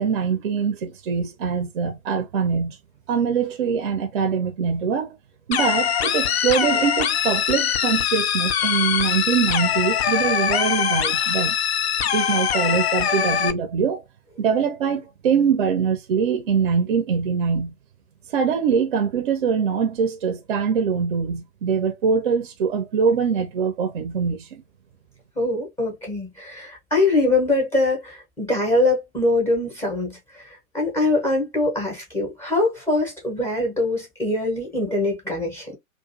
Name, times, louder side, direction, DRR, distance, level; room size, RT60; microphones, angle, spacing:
voice 1, 0.0-2.8 3.1-5.2 5.5-11.6 12.1-14.0 14.4-17.7 18.3-24.6, right 6 dB, 40° right, 0.5 m, -23 dB
sound 1, 5.5-13.5, left 8 dB, 50° left, 0.4 m, -22 dB
voice 2, 25.4-35.7, left 2 dB, 5° left, 0.6 m, -23 dB
2.4 x 2.3 x 2.5 m
figure-of-eight pair, 120°, 42 cm